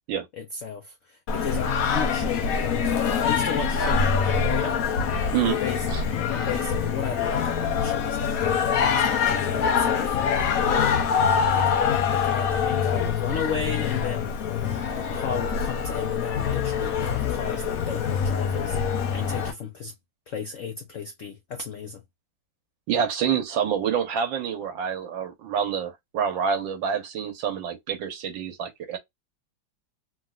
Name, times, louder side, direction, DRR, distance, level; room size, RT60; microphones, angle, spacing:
voice 1, 0.3-4.8 5.2-6.0 6.3-11.0 11.5-14.4 14.9-19.9 20.3-22.0, left 7 dB, 85° left, 0.6 m, -34 dB
Singing, 1.3-19.5, left 6 dB, 65° left, 0.9 m, -25 dB
Thump thud, 2.2-2.5 4.0-4.4 5.9-6.2 7.7-8.1 9.5-9.9 11.4-11.7 13.2-13.6 15.1-15.4, equal, 35° right, 1.1 m, -40 dB
voice 2, 22.9-29.0, right 7 dB, 75° right, 1.6 m, -27 dB
3.6 x 2.2 x 2.4 m
omnidirectional pair, 2.1 m